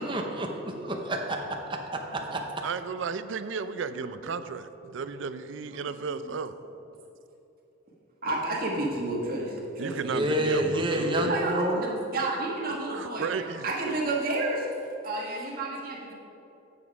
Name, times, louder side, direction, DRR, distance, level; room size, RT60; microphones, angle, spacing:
voice 1, 0.0-1.4 2.3-2.4 10.0-11.8, right 1 dB, 25° right, 2 dB, 0.7 m, -28 dB
voice 2, 2.6-6.5 9.8-11.3 12.7-13.9, right 5 dB, 60° right, 12 dB, 0.4 m, -34 dB
voice 3, 8.2-10.3 11.2-14.7 15.0-16.1, right 2 dB, 45° right, -2 dB, 1.5 m, -31 dB
8.2 x 7.0 x 4.8 m, 2.8 s
head